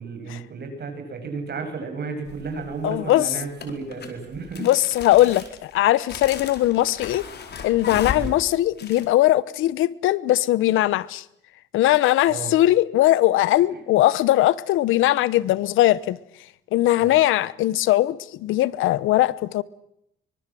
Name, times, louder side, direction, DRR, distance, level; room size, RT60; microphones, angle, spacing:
voice 1, 0.0-4.7 8.1-8.3 12.3-12.6 17.0-17.2, right 4 dB, 55° right, 7.9 m, -33 dB
sound 1, 2.3-2.7 3.6-9.0, left 6 dB, 55° left, 4.6 m, -35 dB
voice 2, 2.8-3.3 4.6-7.2 7.6-11.2 11.7-16.2 16.7-19.6, left 15 dB, 90° left, 1.0 m, -20 dB
24.5 x 23.5 x 7.7 m
cardioid pair, 90°, 20 cm